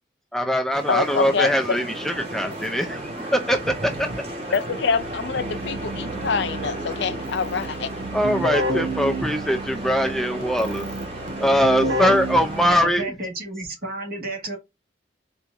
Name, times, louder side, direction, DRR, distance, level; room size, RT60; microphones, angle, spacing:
voice 1, 0.3-4.1 8.1-10.9 11.4-13.1, equal, ahead, 0.4 m, -22 dB
sound 1, 0.7-12.7, right 1 dB, 35° right, 1.4 m, -34 dB
voice 2, 0.9-1.8 4.5-7.9, left 5 dB, 70° left, 0.5 m, -25 dB
Keyboard (musical), 4.8-13.1, right 1 dB, 90° right, 1.0 m, -31 dB
voice 3, 12.7-14.6, right 2 dB, 55° right, 1.7 m, -31 dB
4.4 x 2.5 x 3.4 m
head